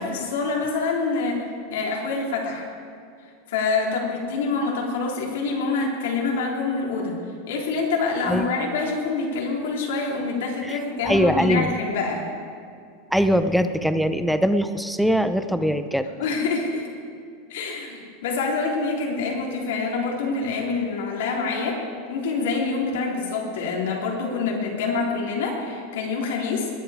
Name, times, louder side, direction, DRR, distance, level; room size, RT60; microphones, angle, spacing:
voice 1, 0.0-2.7 3.5-7.2 7.5-12.2 16.2-16.9 17.5-21.8 22.1-26.7, left 4 dB, 85° left, -1 dB, 3.4 m, -26 dB
voice 2, 10.7-11.7 13.1-16.1, equal, ahead, 10 dB, 0.6 m, -22 dB
20.0 x 10.5 x 5.0 m, 2.4 s
supercardioid pair, 140°, 0 cm